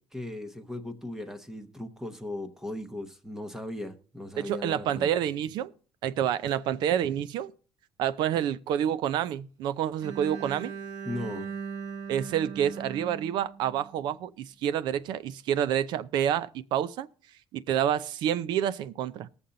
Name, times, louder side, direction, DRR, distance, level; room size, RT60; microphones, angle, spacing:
voice 1, 0.0-5.1 11.0-11.5, left 1 dB, 5° right, 0.9 m, -37 dB
voice 2, 4.4-5.7 6.0-7.5 8.0-10.7 12.1-17.1 17.5-19.3, right 10 dB, 70° right, 0.6 m, -28 dB
Bowed string instrument, 10.0-14.1, right 6 dB, 55° right, 1.3 m, -39 dB
19.5 x 7.1 x 3.9 m
cardioid pair, 170°, 8 cm